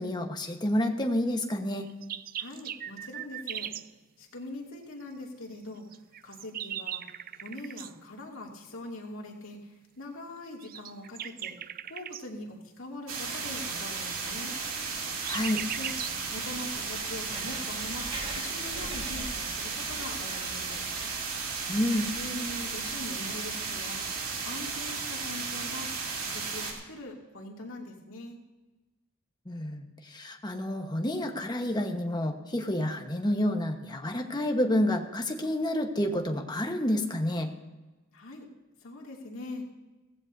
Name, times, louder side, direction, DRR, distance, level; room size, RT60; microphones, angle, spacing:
voice 1, 0.0-1.9 15.3-15.6 21.7-22.1 29.5-37.5, left 1 dB, 20° left, 4 dB, 1.2 m, -29 dB
sound 1, 1.8-3.9 5.9-7.9 10.6-12.2 14.6-16.2, right 10 dB, 45° right, 0.4 m, -38 dB
voice 2, 2.4-3.7 4.2-5.8 6.2-7.0 7.3-11.5 11.9-14.6 15.5-20.8 22.2-24.1 24.5-28.4 38.1-38.5 38.8-39.6, left 1 dB, 70° left, -1 dB, 2.6 m, -42 dB
sound 2, 13.1-26.7, right 4 dB, 80° right, 2.9 m, -34 dB
Writing, 14.2-23.4, right 1 dB, 30° right, 3.7 m, -46 dB
17.0 x 15.5 x 2.7 m, 1.1 s
head